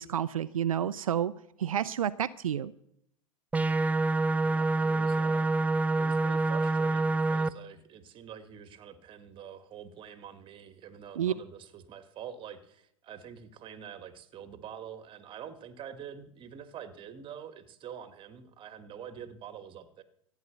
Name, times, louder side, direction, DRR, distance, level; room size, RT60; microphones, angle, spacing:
voice 1, 0.0-1.3 1.6-2.7 11.2-11.3, right 9 dB, 80° right, 14 dB, 0.5 m, -30 dB
sound 1, 3.5-7.5, right 2 dB, 10° right, 0.5 m, -26 dB
voice 2, 4.4-5.5 5.9-20.0, right 8 dB, 30° right, 12 dB, 1.5 m, -46 dB
14.5 x 9.3 x 6.8 m, 0.73 s
hypercardioid pair, 100°, 17 cm